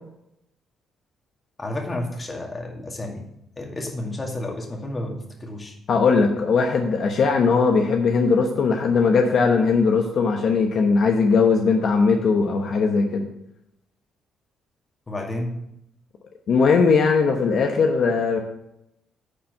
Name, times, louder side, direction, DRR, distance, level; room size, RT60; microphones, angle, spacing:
voice 1, 1.6-3.2 3.6-5.8 15.1-15.6, left 1 dB, 25° left, 1 dB, 2.1 m, -31 dB
voice 2, 5.9-13.3 16.5-18.4, left 4 dB, 60° left, 3 dB, 1.0 m, -19 dB
10.0 x 4.4 x 6.4 m, 0.81 s
cardioid pair, 90°, 0 cm